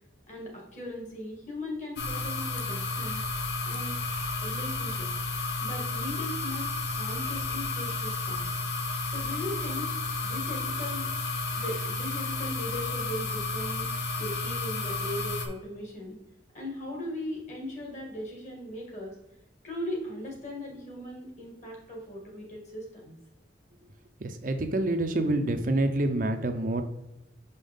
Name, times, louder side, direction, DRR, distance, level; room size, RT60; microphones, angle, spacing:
voice 1, 0.3-3.2 3.6-4.0 4.4-5.1 5.6-8.4 9.1-9.9 10.2-11.1 11.5-13.9 14.2-16.2 16.5-19.2 19.6-23.1, left 1 dB, 40° left, -1 dB, 2.0 m, -38 dB
sound 1, 2.0-15.5, left 3 dB, 60° left, 0.8 m, -32 dB
voice 2, 24.2-26.8, right 2 dB, 45° right, 6 dB, 0.5 m, -27 dB
5.9 x 5.5 x 3.5 m, 0.93 s
head